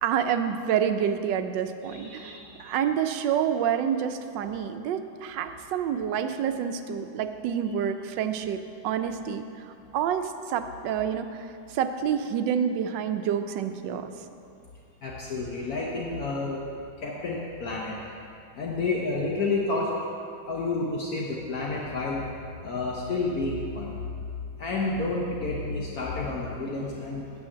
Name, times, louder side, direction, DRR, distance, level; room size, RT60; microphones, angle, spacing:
voice 1, 0.0-8.6 8.8-9.4 9.9-14.1, right 8 dB, 80° right, 8 dB, 1.3 m, -28 dB
voice 2, 1.8-2.5 15.0-16.6 17.0-18.0 18.5-19.9 20.5-22.2 22.6-23.9 24.6-27.3, left 3 dB, 60° left, -3 dB, 1.3 m, -30 dB
8.9 x 5.6 x 7.2 m, 2.5 s
omnidirectional pair, 1.9 m